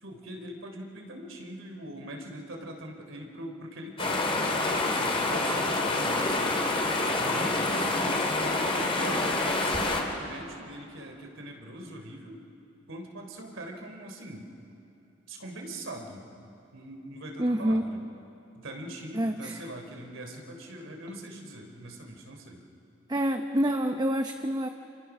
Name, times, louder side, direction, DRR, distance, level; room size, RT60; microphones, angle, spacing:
voice 1, 0.0-4.3 4.9-6.7 7.2-12.4 12.9-14.5 15.3-16.3 16.7-18.0 18.5-22.6, right 1 dB, 70° right, 3 dB, 3.4 m, -42 dB
sound 1, 4.0-10.0, left 2 dB, 30° left, 3.0 m, -27 dB
voice 2, 17.4-17.8 19.1-19.6 23.1-24.7, equal, 20° right, 6 dB, 0.8 m, -27 dB
28.0 x 26.5 x 6.1 m, 2.8 s
head